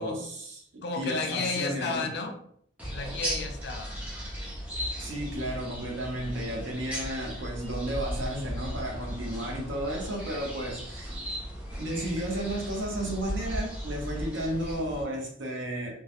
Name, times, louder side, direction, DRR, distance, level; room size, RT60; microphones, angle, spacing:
voice 1, 0.0-2.1 5.0-11.1 11.8-16.0, right 1 dB, 75° right, 0.7 m, -33 dB
voice 2, 0.8-2.3 2.9-3.9, left 4 dB, 60° left, 0.4 m, -32 dB
sound 1, 2.8-15.0, equal, 10° right, 0.5 m, -36 dB
2.2 x 2.1 x 2.8 m
head